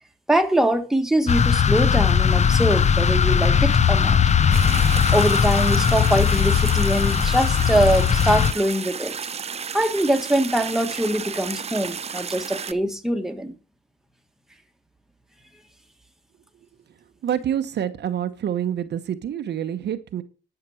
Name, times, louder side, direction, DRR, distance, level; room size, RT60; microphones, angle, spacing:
voice 1, 0.3-4.2 5.1-9.1 9.7-13.5, right 1 dB, ahead, 1.4 m, -23 dB
sound 1, 1.3-8.5, left 7 dB, 35° left, 0.7 m, -19 dB
sound 2, 4.5-12.7, right 6 dB, 30° right, 0.6 m, -33 dB
voice 2, 17.2-20.2, right 9 dB, 60° right, 0.9 m, -27 dB
10.5 x 5.9 x 6.3 m
cardioid pair, 90°, 20 cm